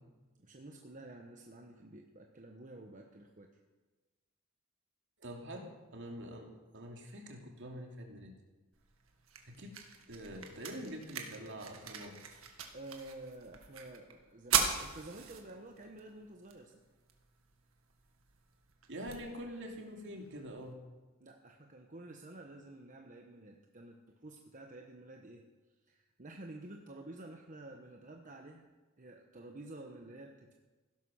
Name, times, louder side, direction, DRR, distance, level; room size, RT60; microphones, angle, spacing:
voice 1, 0.4-3.5 12.7-16.8 21.2-25.5 25.9-28.7 29.0-30.5, right 2 dB, 40° right, 2 dB, 1.1 m, -50 dB
voice 2, 5.2-8.3 9.4-9.8 10.1-12.3 18.9-20.8, equal, 60° right, 2 dB, 2.6 m, -45 dB
sound 1, 8.7-20.7, right 7 dB, 75° right, 1.9 m, -41 dB
16.0 x 11.5 x 6.4 m, 1.2 s
head